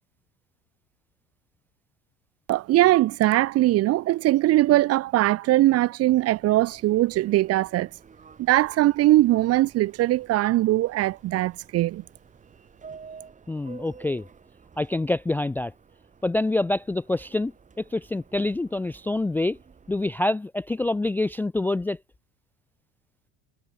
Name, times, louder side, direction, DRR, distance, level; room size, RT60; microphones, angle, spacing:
voice 1, 2.5-7.9 8.4-12.0, right 16 dB, 45° right, 0.9 m, -21 dB
Subway metro underground, 6.3-20.1, right 5 dB, 20° right, 6.4 m, -51 dB
voice 2, 13.5-14.2 14.8-15.7 16.2-17.5 17.8-19.6 19.9-22.0, left 2 dB, 5° left, 0.4 m, -26 dB
cardioid pair, 145°, 35 cm